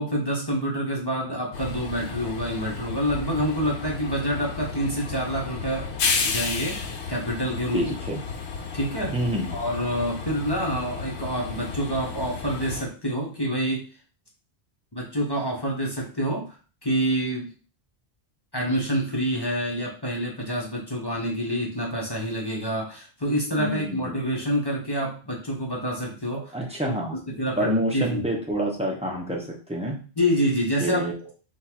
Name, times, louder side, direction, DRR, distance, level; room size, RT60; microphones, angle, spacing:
voice 1, 0.0-5.9 6.2-6.8 7.1-8.0 8.7-9.1 9.5-13.9 14.9-16.6 16.8-17.5 18.5-26.5 26.9-27.0 27.3-28.2 30.2-31.0, equal, 25° left, -2 dB, 0.9 m, -27 dB
Train, 1.5-12.8, left 5 dB, 85° left, 1.0 m, -32 dB
voice 2, 7.7-8.2 9.1-9.6 23.6-24.0 26.5-27.2 27.6-30.0 30.8-31.1, right 1 dB, 5° right, -2 dB, 0.9 m, -27 dB
3.7 x 2.5 x 4.5 m, 0.36 s
omnidirectional pair, 1.1 m